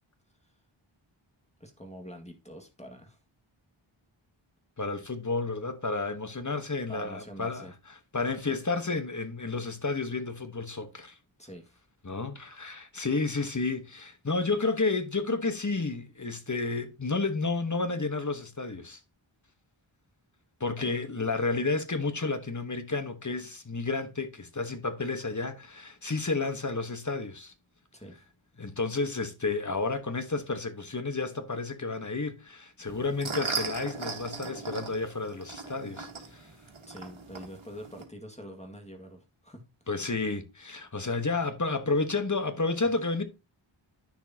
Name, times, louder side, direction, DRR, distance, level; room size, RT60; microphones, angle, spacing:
voice 1, 1.6-3.2 6.9-7.7 11.4-11.8 20.8-20.9 27.9-28.2 36.9-39.7, equal, 15° left, 2.0 m, -45 dB
voice 2, 4.8-7.7 8.1-11.2 12.0-19.0 20.6-27.5 28.6-36.5 39.9-43.2, left 3 dB, 35° left, 1.3 m, -31 dB
sound 1, 32.9-38.0, right 4 dB, 70° right, 1.8 m, -38 dB
10.0 x 6.3 x 2.9 m
wide cardioid pair, 45°, 49 cm